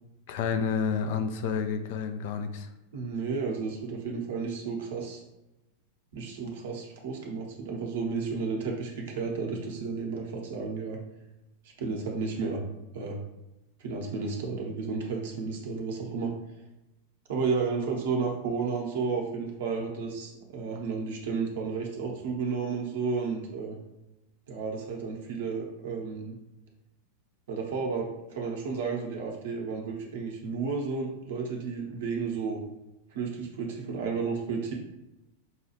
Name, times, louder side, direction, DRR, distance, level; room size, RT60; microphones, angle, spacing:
voice 1, 0.3-2.7, left 6 dB, 50° left, 8 dB, 0.4 m, -30 dB
voice 2, 2.9-5.2 6.1-11.0 11.8-12.6 12.9-13.2 13.8-16.3 17.3-23.8 24.5-26.3 27.5-32.6 33.1-34.7, right 5 dB, 55° right, 0 dB, 0.9 m, -32 dB
5.6 x 2.3 x 3.1 m, 0.96 s
figure-of-eight pair, 90°, 0 cm